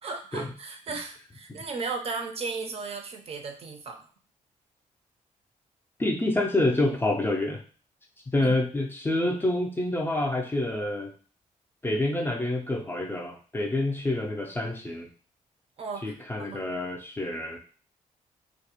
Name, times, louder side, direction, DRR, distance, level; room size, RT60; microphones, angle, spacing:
voice 1, 0.0-4.1 8.4-8.6 15.8-16.6, right 4 dB, 45° right, 5 dB, 0.4 m, -36 dB
voice 2, 6.0-7.6 8.3-11.1 11.8-15.1 16.0-17.6, left 2 dB, 15° left, 2 dB, 0.4 m, -27 dB
2.4 x 2.0 x 2.8 m, 0.39 s
cardioid pair, 110°, 14 cm